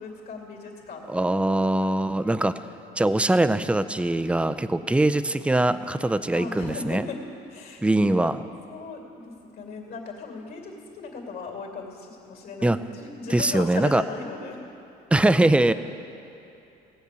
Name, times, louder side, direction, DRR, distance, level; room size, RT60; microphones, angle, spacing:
voice 1, 0.0-1.3 1.5-2.5 6.3-7.2 7.5-8.3 8.7-14.6, left 4 dB, 65° left, 1 dB, 2.6 m, -38 dB
voice 2, 1.1-2.6 3.0-7.0 7.8-8.4 12.6-12.8 13.3-14.0 15.1-15.7, right 1 dB, 5° right, 13 dB, 0.4 m, -22 dB
17.5 x 8.0 x 6.9 m, 2.8 s
cardioid pair, 110°, 17 cm